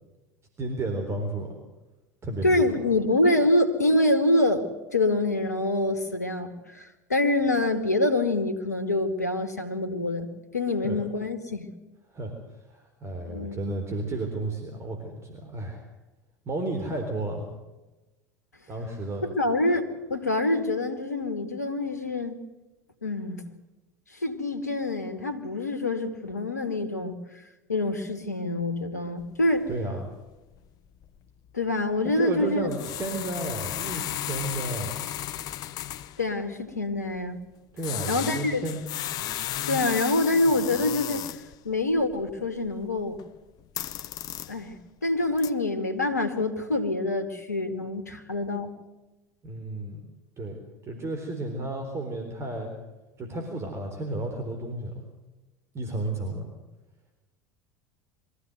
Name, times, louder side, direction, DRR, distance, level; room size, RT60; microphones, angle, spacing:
voice 1, 0.6-1.5 2.2-2.6 10.8-11.0 12.1-12.3 12.7-15.8 16.5-17.5 18.7-19.3 29.7-30.1 32.2-35.0 37.7-38.9 49.4-50.0 50.4-52.7 53.2-55.0 55.7-56.5, right 2 dB, 30° right, 4 dB, 3.9 m, -32 dB
voice 2, 2.4-4.6 4.9-11.7 13.3-13.8 19.4-22.4 23.0-23.4 24.2-27.2 27.7-29.7 31.5-32.7 36.2-37.4 38.1-38.6 39.7-41.3 41.7-43.2 44.5-48.7, left 2 dB, 90° left, 9 dB, 2.1 m, -26 dB
sound 1, 29.2-29.3 29.6-29.8 30.1-30.3 30.6-30.7 31.0-31.2 32.7-36.3 37.8-41.5 41.9-43.3 43.6-44.8 45.2-45.5, left 12 dB, 50° left, 0.9 m, -34 dB
23.0 x 15.0 x 8.0 m, 1.1 s
hypercardioid pair, 75°, 9 cm